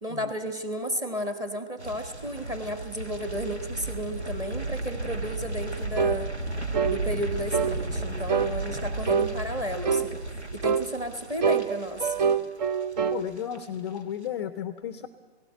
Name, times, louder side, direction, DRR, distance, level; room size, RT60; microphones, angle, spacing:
voice 1, 0.0-6.3 6.9-10.2 10.5-12.1, equal, 10° right, 8 dB, 1.3 m, -33 dB
sound 1, 1.8-12.9 13.2-13.6 13.9-14.0, right 2 dB, 90° right, 1.5 m, -34 dB
sound 2, 6.0-6.2 6.7-7.0 7.5-7.8 8.3-8.5 9.1-9.3 9.8-10.1 10.6-10.9 11.4-13.2, right 6 dB, 40° right, 0.8 m, -25 dB
voice 2, 13.1-15.1, left 9 dB, 25° left, 11 dB, 0.5 m, -33 dB
17.0 x 17.0 x 9.1 m, 1.4 s
figure-of-eight pair, 125°, 32 cm